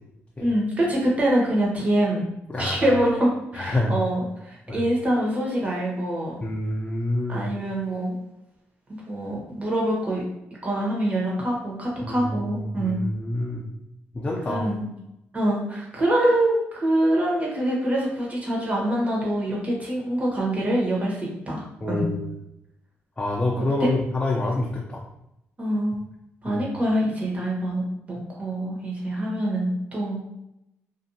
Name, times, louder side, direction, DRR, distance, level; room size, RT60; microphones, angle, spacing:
voice 1, 0.4-2.2 2.6-6.4 7.3-8.1 8.9-10.2 10.6-13.0 14.5-14.9 15.3-22.0 25.6-26.0 26.4-30.2, right 1 dB, 25° right, -4 dB, 1.0 m, -25 dB
voice 2, 2.5-3.0 3.5-4.0 4.7-4.8 6.4-7.5 12.0-12.3 12.7-13.6 14.1-14.7 21.8-22.3 23.2-25.0 26.5-26.6, left 1 dB, 25° left, -3 dB, 0.4 m, -27 dB
2.5 x 2.3 x 2.6 m, 0.86 s
cardioid pair, 85°, 5 cm